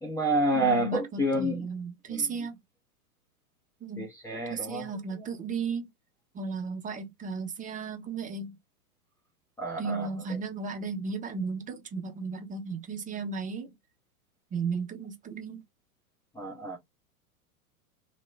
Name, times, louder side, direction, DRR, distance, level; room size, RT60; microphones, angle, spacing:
voice 1, 0.0-1.5 4.0-4.8 9.6-10.1 16.4-16.8, right 1 dB, 5° left, 0.7 m, -28 dB
voice 2, 0.5-2.6 3.8-4.1 4.5-5.9 6.3-8.5 9.8-13.7 14.5-15.6, right 5 dB, 20° right, 1.0 m, -34 dB
3.0 x 3.0 x 2.2 m
hypercardioid pair, 105°, 44 cm